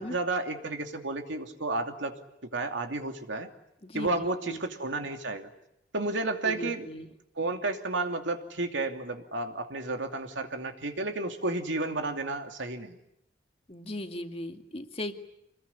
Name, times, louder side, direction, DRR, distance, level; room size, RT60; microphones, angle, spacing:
voice 1, 0.0-2.2 2.5-3.5 3.9-5.5 5.9-6.9 7.4-13.0, right 2 dB, 80° right, 5 dB, 2.8 m, -32 dB
voice 2, 3.8-4.6 6.4-7.1 13.7-15.1, left 1 dB, 30° left, 6 dB, 2.1 m, -38 dB
27.0 x 21.0 x 10.0 m, 0.82 s
head